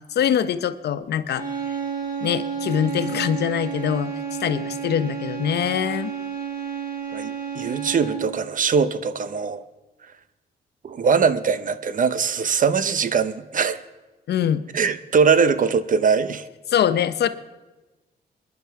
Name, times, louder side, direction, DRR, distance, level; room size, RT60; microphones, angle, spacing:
voice 1, 0.1-1.4 2.2-4.1 4.4-6.1 14.3-14.6 16.7-17.3, left 9 dB, 75° left, 12 dB, 0.8 m, -23 dB
sound 1, 1.3-8.4, right 7 dB, 20° right, 3.6 m, -31 dB
voice 2, 7.1-9.6 10.8-13.8 14.7-16.4, right 6 dB, 50° right, 14 dB, 0.8 m, -21 dB
25.0 x 10.5 x 4.7 m, 1.1 s
cardioid pair, 95°, 17 cm